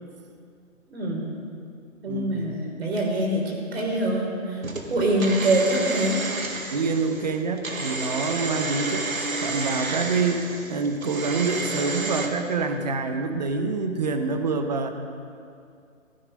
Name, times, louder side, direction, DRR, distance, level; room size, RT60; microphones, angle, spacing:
voice 1, 0.9-1.3 2.0-4.6 4.9-6.1, right 1 dB, 50° right, 0 dB, 3.8 m, -24 dB
voice 2, 2.1-2.5 6.7-14.9, right 4 dB, 30° right, 7 dB, 0.9 m, -26 dB
sound 1, 4.6-12.3, right 3 dB, 80° right, 1.9 m, -31 dB
15.0 x 12.0 x 5.3 m, 2.4 s
hypercardioid pair, 160°, 41 cm